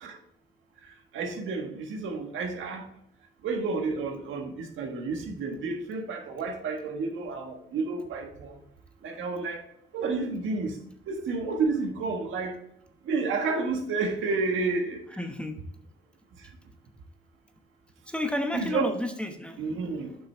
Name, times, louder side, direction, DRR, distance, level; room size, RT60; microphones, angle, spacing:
voice 1, 1.1-2.9 3.4-8.6 9.0-9.6 9.9-10.8 11.1-12.6 13.0-15.0 18.5-18.9 19.6-20.1, right 4 dB, 80° right, 3 dB, 1.5 m, -30 dB
voice 2, 15.1-15.6 18.1-20.2, left 1 dB, 5° left, 5 dB, 1.0 m, -32 dB
8.6 x 5.7 x 3.4 m, 0.76 s
cardioid pair, 90°, 20 cm